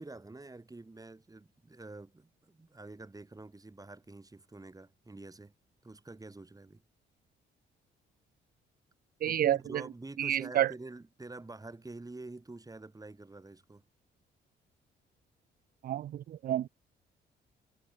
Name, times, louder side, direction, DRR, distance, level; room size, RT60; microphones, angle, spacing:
voice 1, 0.0-5.5 5.8-6.8 9.3-13.8, right 2 dB, 15° right, 7.3 m, -47 dB
voice 2, 9.2-9.8 10.2-10.7 15.8-16.7, right 12 dB, 50° right, 0.4 m, -29 dB
cardioid pair, 90°, 20 cm